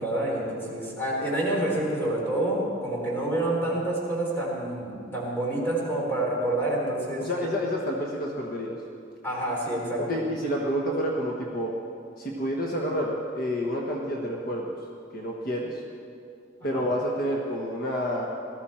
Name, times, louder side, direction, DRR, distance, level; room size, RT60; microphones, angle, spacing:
voice 1, 0.0-7.3 9.2-10.2 16.7-16.9, right 1 dB, 10° left, -4 dB, 3.9 m, -28 dB
voice 2, 7.2-8.8 10.0-11.7 12.2-14.7 15.1-15.8 16.6-18.3, equal, 50° left, -1 dB, 1.3 m, -29 dB
19.0 x 14.0 x 4.4 m, 2.5 s
head